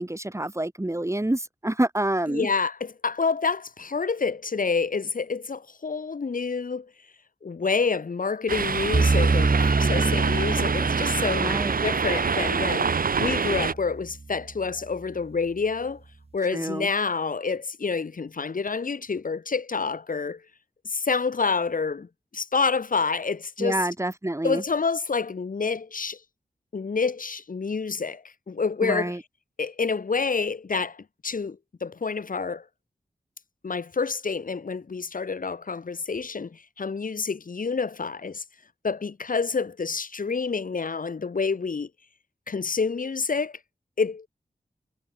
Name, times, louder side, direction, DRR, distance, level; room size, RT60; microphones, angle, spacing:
voice 1, 0.0-2.5 11.3-11.8 16.5-16.9 23.6-24.6 28.8-29.2, right 1 dB, 20° right, 5.7 m, -27 dB
voice 2, 2.3-6.9 7.4-12.9 13.2-16.0 16.3-20.4 20.8-22.1 22.3-23.9 24.4-26.2 26.7-29.2 29.6-32.6 33.6-38.4 38.8-41.9 42.5-43.6 44.0-44.3, left 4 dB, 75° left, 6.5 m, -28 dB
sound 1, 8.5-13.7, right 5 dB, 85° right, 7.1 m, -26 dB
sound 2, 8.9-14.1, right 3 dB, 45° right, 2.0 m, -26 dB
cardioid pair, 50°, 14 cm